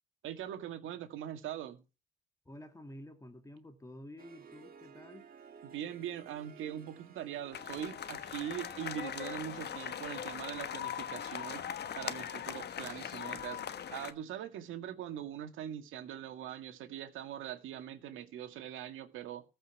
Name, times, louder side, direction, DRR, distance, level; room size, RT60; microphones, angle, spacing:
voice 1, 0.2-1.8 5.6-19.4, right 10 dB, 85° right, 1.8 m, -42 dB
voice 2, 2.5-5.3, left 1 dB, 15° left, 2.5 m, -50 dB
Harp, 4.2-10.4, right 7 dB, 45° right, 2.4 m, -56 dB
sound 1, 7.5-14.1, left 9 dB, 55° left, 1.2 m, -40 dB
14.5 x 5.5 x 6.9 m
cardioid pair, 90°, 20 cm